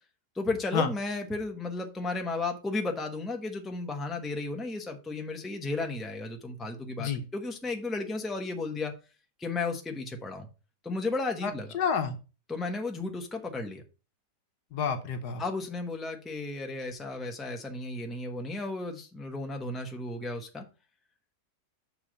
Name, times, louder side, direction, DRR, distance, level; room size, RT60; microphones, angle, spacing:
voice 1, 0.3-8.9 9.4-10.5 10.8-11.7 12.5-13.8 15.4-20.6, left 3 dB, ahead, 3 dB, 0.9 m, -34 dB
voice 2, 11.4-12.2 14.7-15.4, left 6 dB, 65° left, 6 dB, 1.4 m, -29 dB
6.9 x 4.2 x 6.2 m, 0.33 s
omnidirectional pair, 1.9 m